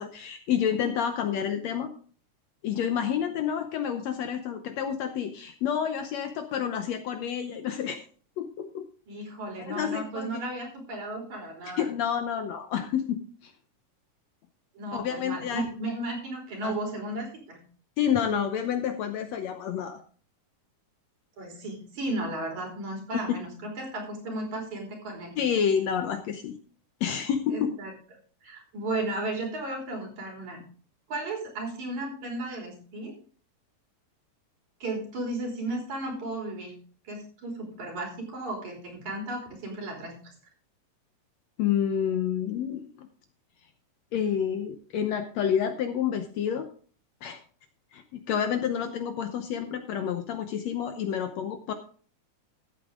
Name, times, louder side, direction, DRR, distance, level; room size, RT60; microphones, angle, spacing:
voice 1, 0.0-1.9 2.6-8.0 8.4-8.9 9.6-10.5 11.6-13.5 14.9-15.6 16.6-16.7 18.0-20.0 25.4-26.6 27.0-27.7 41.6-43.1 44.1-46.7 47.2-47.4 47.9-51.7, left 8 dB, 70° left, 7 dB, 1.8 m, -29 dB
voice 2, 9.1-11.9 14.7-17.6 21.4-25.3 27.5-27.9 28.4-30.6 31.1-33.2 34.8-36.7 37.0-40.3, right 2 dB, 65° right, 0 dB, 4.9 m, -34 dB
13.5 x 8.5 x 3.7 m, 0.42 s
omnidirectional pair, 3.7 m